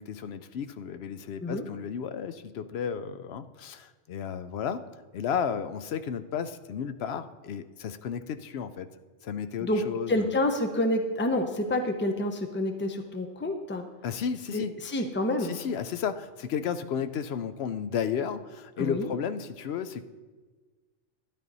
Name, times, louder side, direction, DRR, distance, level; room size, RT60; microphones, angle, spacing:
voice 1, 0.0-4.8 5.1-8.9 9.2-10.3 14.0-14.7 15.4-20.0, left 7 dB, 65° left, 11 dB, 0.7 m, -33 dB
voice 2, 10.1-13.8 14.5-15.5 18.8-19.1, left 1 dB, 10° left, 6 dB, 0.7 m, -28 dB
12.5 x 10.0 x 4.0 m, 1.3 s
omnidirectional pair, 1.3 m